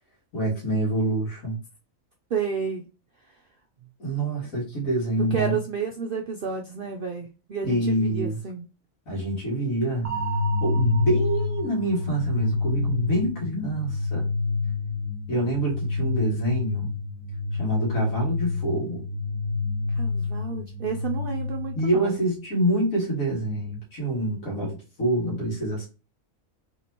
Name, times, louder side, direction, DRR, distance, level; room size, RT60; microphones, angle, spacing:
voice 1, 0.3-1.6 4.0-5.5 7.6-8.4 9.1-10.1 10.6-14.3 15.3-16.9 17.6-19.0 21.8-25.9, right 1 dB, 75° left, 2.3 m, -26 dB
voice 2, 2.3-2.9 5.3-8.6 19.9-22.2, right 6 dB, 65° right, 0.5 m, -31 dB
sound 1, 10.0-22.0, left 3 dB, 15° right, 0.8 m, -28 dB
4.2 x 3.8 x 2.9 m
omnidirectional pair, 1.5 m